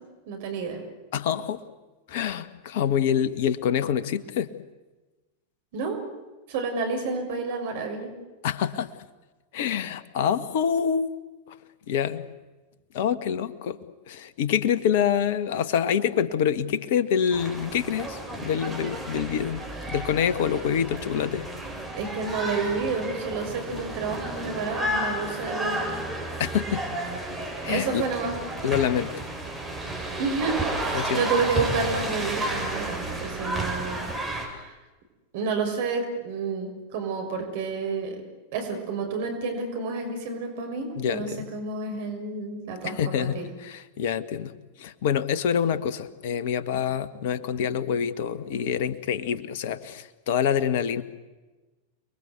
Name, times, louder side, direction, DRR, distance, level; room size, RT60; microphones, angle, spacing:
voice 1, 0.3-0.8 5.7-6.0 6.5-8.1 20.5-20.6 22.0-26.0 27.7-28.3 30.2-34.1 34.4-34.7 35.3-38.2 38.5-43.5, right 4 dB, 50° right, 4 dB, 6.2 m, -30 dB
voice 2, 1.1-1.6 2.1-4.5 8.4-8.9 9.5-11.1 11.5-11.6 11.9-12.2 12.9-13.8 14.1-21.5 26.4-26.8 27.6-28.1 28.6-29.2 30.9-31.2 41.0-41.5 42.8-44.5 44.8-51.0, left 8 dB, 50° left, 14 dB, 1.6 m, -26 dB
sound 1, 17.3-34.5, right 1 dB, 10° right, 7.8 m, -32 dB
29.5 x 21.5 x 8.2 m, 1.2 s
figure-of-eight pair, 90°, 0 cm